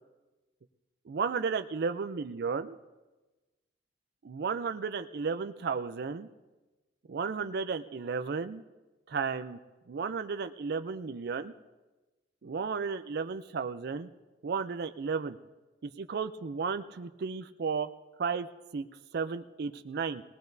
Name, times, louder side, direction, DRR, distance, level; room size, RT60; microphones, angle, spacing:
voice 1, 1.1-2.8 4.2-6.3 7.1-8.6 9.1-9.6 9.9-11.5 12.4-14.1 14.4-15.4 15.8-17.9 18.2-18.5 18.7-18.9 19.1-20.2, right 5 dB, 60° right, 9 dB, 0.4 m, -33 dB
21.0 x 18.0 x 2.6 m, 1.2 s
head